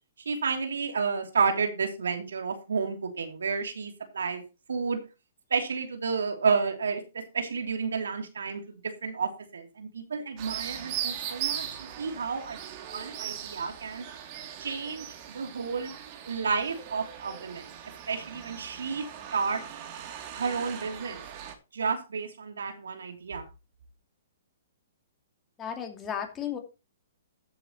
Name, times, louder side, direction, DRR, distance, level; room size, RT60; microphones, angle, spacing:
voice 1, 0.2-4.4 4.7-5.0 5.5-11.7 12.0-12.6 12.9-14.0 14.6-15.9 16.3-17.7 18.1-19.1 19.3-19.6 20.3-21.2 21.7-23.4, right 5 dB, 80° right, 5 dB, 2.9 m, -31 dB
sound 1, 10.4-21.5, right 10 dB, 40° right, 2.7 m, -39 dB
voice 2, 25.6-26.6, left 8 dB, 20° left, 4 dB, 2.6 m, -34 dB
14.0 x 7.8 x 3.0 m, 0.29 s
hypercardioid pair, 130°, 0 cm